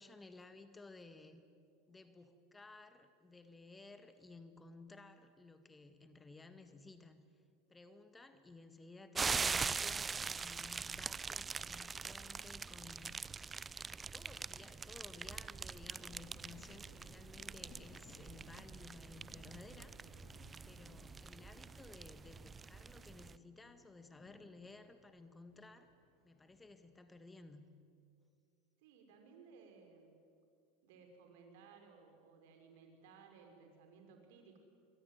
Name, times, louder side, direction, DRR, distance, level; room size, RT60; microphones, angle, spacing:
voice 1, 0.0-1.4 1.9-7.4 7.7-13.2 13.7-20.0 20.7-25.9 26.2-27.7, left 3 dB, 15° left, 9 dB, 1.9 m, -56 dB
sound 1, 9.1-23.4, right 5 dB, 20° right, 0.6 m, -43 dB
sound 2, 15.6-26.9, left 3 dB, 50° left, 4.5 m, -63 dB
voice 2, 28.8-30.2 30.8-34.6, right 5 dB, 65° right, 4 dB, 5.7 m, -60 dB
26.0 x 23.5 x 9.4 m, 2.4 s
hypercardioid pair, 85°, 0 cm